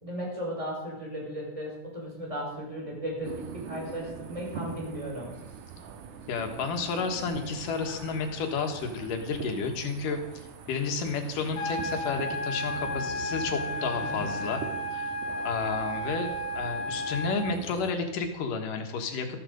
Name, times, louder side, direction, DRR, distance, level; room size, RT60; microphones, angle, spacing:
voice 1, 0.0-5.4, equal, 10° right, -2 dB, 4.7 m, -36 dB
sound 1, 2.9-16.8, right 3 dB, 30° right, 1.3 m, -47 dB
sound 2, 3.2-17.9, right 7 dB, 80° right, 2.6 m, -44 dB
voice 2, 6.3-14.7 14.9-15.1 15.4-19.3, left 4 dB, 85° left, 5 dB, 3.2 m, -31 dB
sound 3, 11.6-17.5, left 1 dB, 60° left, 3.0 m, -33 dB
13.5 x 13.0 x 5.2 m, 0.98 s
omnidirectional pair, 3.7 m